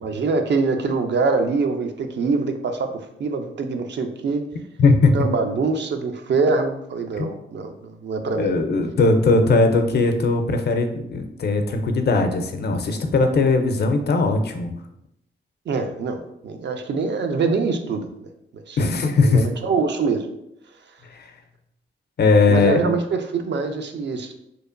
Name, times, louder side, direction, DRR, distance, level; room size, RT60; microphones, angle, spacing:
voice 1, 0.0-4.4 5.1-8.5 15.7-18.1 18.5-18.8 19.2-20.3 22.5-24.4, right 4 dB, 60° right, 6 dB, 0.4 m, -24 dB
voice 2, 4.8-5.3 7.2-7.3 8.4-14.7 18.8-19.5 21.1-21.3 22.2-22.8, left 3 dB, 55° left, 6 dB, 0.4 m, -19 dB
2.8 x 2.1 x 2.4 m, 0.80 s
cardioid pair, 55°, 21 cm